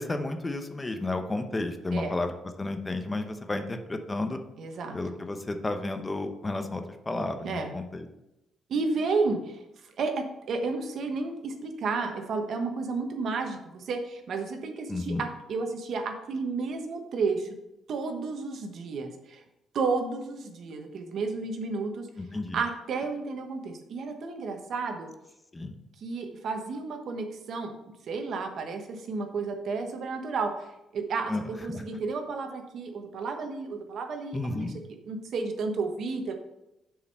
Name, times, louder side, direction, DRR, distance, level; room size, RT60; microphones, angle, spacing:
voice 1, 0.0-2.3 2.6-4.4 4.9-8.1 14.9-15.2 22.2-22.6 25.5-25.8 31.3-31.8 34.3-34.8, left 2 dB, 20° left, 7 dB, 0.8 m, -32 dB
voice 2, 4.6-5.0 7.4-7.7 8.7-9.6 10.0-17.5 17.9-19.4 19.7-22.1 22.5-25.1 26.0-27.7 28.1-30.6 30.9-34.7 35.0-36.3, right 4 dB, 65° right, 5 dB, 1.1 m, -32 dB
6.7 x 4.9 x 5.5 m, 0.91 s
cardioid pair, 90°, 0 cm